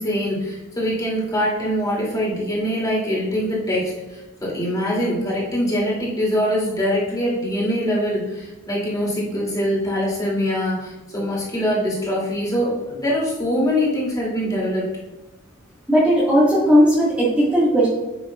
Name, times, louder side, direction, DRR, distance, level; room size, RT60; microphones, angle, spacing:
voice 1, 0.0-14.9, equal, 20° left, -6 dB, 2.8 m, -23 dB
voice 2, 15.9-17.9, equal, 5° right, -10 dB, 1.8 m, -16 dB
10.0 x 7.1 x 2.4 m, 1.0 s
head